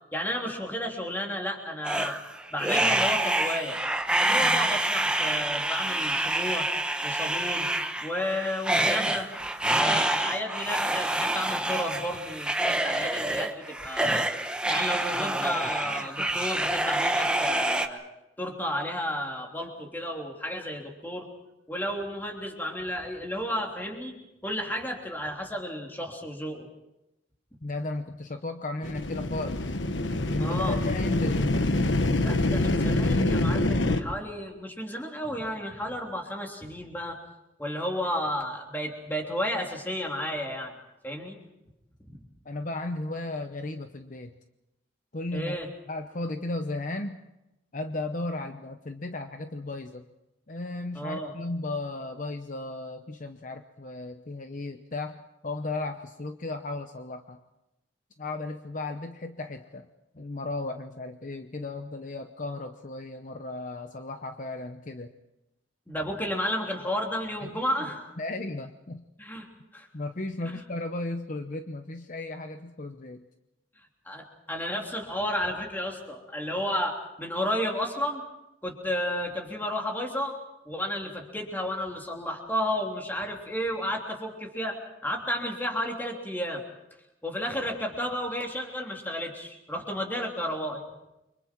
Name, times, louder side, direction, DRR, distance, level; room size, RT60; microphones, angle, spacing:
voice 1, 0.1-2.2 2.5-3.8 4.2-6.7 7.0-7.7 8.0-9.3 9.6-14.3 14.7-18.0 18.4-21.3 21.7-24.1 24.4-26.7 30.4-30.8 32.2-37.2 37.6-40.7 41.0-41.4 45.3-45.7 50.9-51.3 65.9-68.1 69.2-69.5 69.7-69.9 70.4-70.6 74.0-78.2 78.6-80.3 80.6-86.6 87.2-90.8, equal, 10° left, 1 dB, 3.2 m, -32 dB
sound 1, 1.8-17.9, right 1 dB, 5° right, 1.1 m, -27 dB
voice 2, 27.6-29.7 30.2-31.5 42.4-44.3 45.1-47.2 47.7-50.1 50.5-57.4 58.2-59.9 60.1-65.1 67.4-67.5 68.2-69.1 69.9-73.2, left 2 dB, 45° left, 7 dB, 0.9 m, -35 dB
sound 2, 28.8-34.0, left 2 dB, 80° left, 1.3 m, -25 dB
30.0 x 24.5 x 4.6 m, 0.94 s
head